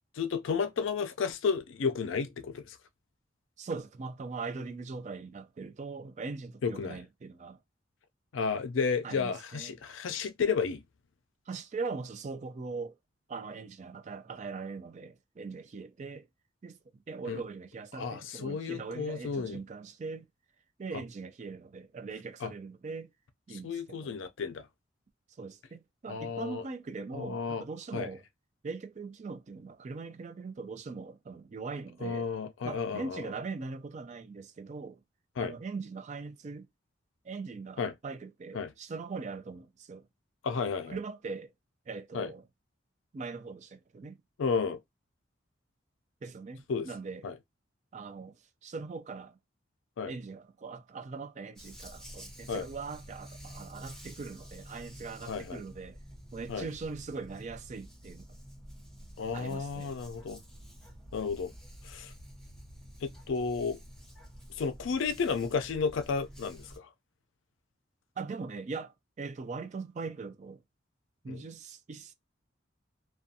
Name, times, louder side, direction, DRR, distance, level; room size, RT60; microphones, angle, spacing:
voice 1, 0.2-2.8 6.6-7.0 8.3-10.8 17.3-17.4 17.9-19.6 22.4-22.5 23.5-24.7 26.1-26.6 27.1-27.6 27.9-28.1 32.0-33.3 35.4-35.6 37.8-37.9 38.5-38.7 40.4-41.0 42.1-42.3 44.4-44.8 46.7-46.9 47.2-47.3 50.0-50.1 52.5-52.7 55.2-55.6 56.5-56.6 59.2-60.4 61.1-61.5 61.8-62.1 63.0-63.8 64.6-66.9 71.3-71.4, left 5 dB, 80° left, 0.4 m, -32 dB
voice 2, 3.6-7.6 9.0-9.7 11.5-13.0 13.3-16.3 16.6-16.8 17.1-20.3 20.8-23.1 23.5-24.1 25.4-28.2 28.6-32.3 32.6-35.0 35.4-36.7 37.2-40.1 40.9-41.5 41.9-42.4 43.1-44.2 46.2-47.2 47.9-48.4 48.6-49.4 50.1-56.0 56.3-58.3 59.3-60.0 68.2-70.6 71.2-72.1, right 4 dB, 35° right, 0.3 m, -41 dB
Dog, 51.6-66.8, equal, 5° left, 0.8 m, -49 dB
2.5 x 2.2 x 2.6 m
head